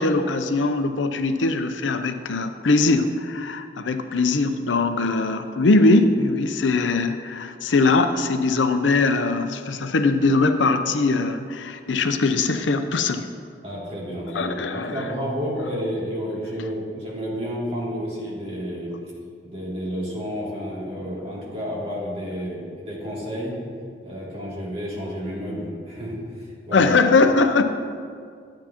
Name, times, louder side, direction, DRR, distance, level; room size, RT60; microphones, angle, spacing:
voice 1, 0.0-13.2 14.3-15.0 26.7-27.6, left 3 dB, 90° left, 8 dB, 0.6 m, -21 dB
voice 2, 13.6-18.9 19.4-23.5 24.0-26.9, equal, 35° right, -7 dB, 2.7 m, -31 dB
12.5 x 8.4 x 2.9 m, 2.2 s
head